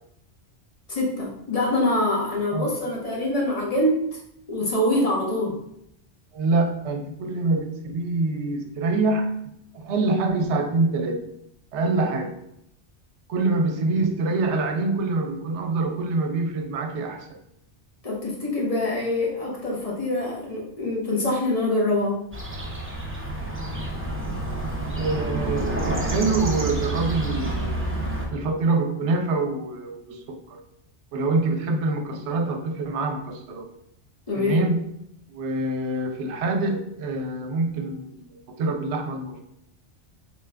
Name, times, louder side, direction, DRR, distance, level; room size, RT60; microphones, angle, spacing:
voice 1, 0.9-4.2 4.5-5.6 18.0-22.2 34.3-34.7, left 1 dB, 35° left, -3 dB, 0.9 m, -24 dB
voice 2, 6.3-9.3 9.7-11.3 11.7-12.3 13.3-17.4 24.9-27.8 28.3-30.6 31.1-33.7 34.4-34.8 35.3-39.4, right 3 dB, 75° right, 5 dB, 0.9 m, -25 dB
sound 1, 22.3-28.3, right 2 dB, 20° right, 0.3 m, -28 dB
4.2 x 2.3 x 3.2 m, 0.76 s
omnidirectional pair, 1.2 m